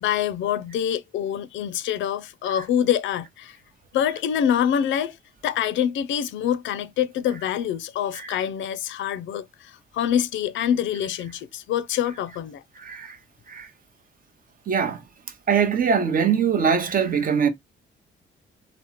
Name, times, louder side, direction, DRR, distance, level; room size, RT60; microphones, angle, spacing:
voice 1, 0.0-3.6 3.9-5.2 5.4-12.6, left 9 dB, 75° left, 0.4 m, -25 dB
voice 2, 12.8-13.2 13.5-13.7 14.7-15.0 15.5-17.5, right 7 dB, 45° right, 0.7 m, -22 dB
3.4 x 2.0 x 2.9 m
cardioid pair, 90°, 20 cm